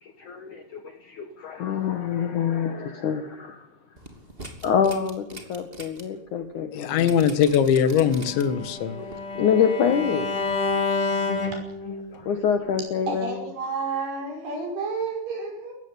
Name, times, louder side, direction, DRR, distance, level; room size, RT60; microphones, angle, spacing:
voice 1, 0.0-3.7 4.6-7.2 9.4-10.3 12.1-13.4, left 7 dB, 65° left, 2.1 m, -26 dB
sound 1, 4.0-6.0 6.4-6.5 7.0-8.6 9.1-9.2, right 2 dB, 15° right, 2.3 m, -41 dB
voice 2, 6.7-9.1, left 8 dB, 80° left, 3.8 m, -21 dB
Bowed string instrument, 8.0-12.2, left 3 dB, 35° left, 3.4 m, -29 dB
voice 3, 13.1-15.7, right 4 dB, 60° right, 7.9 m, -30 dB
19.5 x 15.5 x 9.7 m
omnidirectional pair, 5.2 m